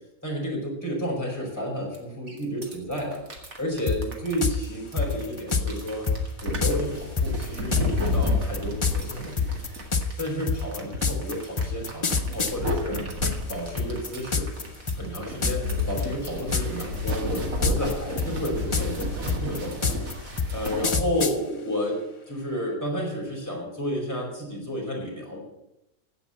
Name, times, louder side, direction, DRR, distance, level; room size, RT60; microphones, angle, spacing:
voice 1, 0.2-3.2 3.6-6.1 6.4-9.6 10.2-13.0 13.5-14.5 15.0-20.2 20.5-25.4, equal, 10° left, -3 dB, 5.1 m, -31 dB
sound 1, 2.3-20.9, left 2 dB, 70° right, 2.4 m, -32 dB
sound 2, 3.9-4.0 4.4-4.6 5.0-5.7 6.1-6.2 6.6-6.8 7.2-13.5 13.8-14.6 14.9-15.2 15.4-15.7 16.0-16.8 17.1-17.9 18.2-21.4, left 4 dB, 30° left, 0.7 m, -26 dB
16.0 x 5.6 x 8.9 m, 0.89 s
omnidirectional pair, 1.5 m